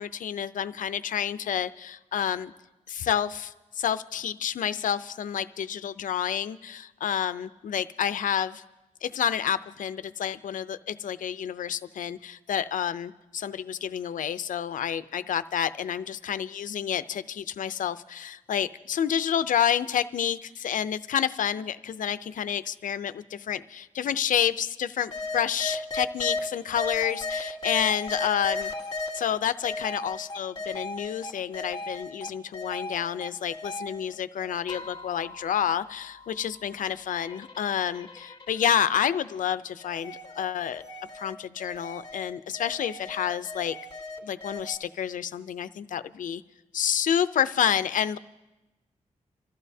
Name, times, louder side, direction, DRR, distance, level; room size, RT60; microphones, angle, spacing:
voice 1, 0.0-2.5 2.9-8.6 9.0-28.7 29.1-40.8 41.1-43.8 44.2-46.4 46.7-48.2, left 9 dB, 90° left, 13 dB, 0.5 m, -29 dB
sound 1, 25.1-26.4 26.8-29.2 29.6-32.3 32.5-39.4 39.8-44.8, left 3 dB, 35° left, 1.7 m, -37 dB
27.5 x 14.0 x 2.7 m, 1.0 s
wide cardioid pair, 130°, 13 cm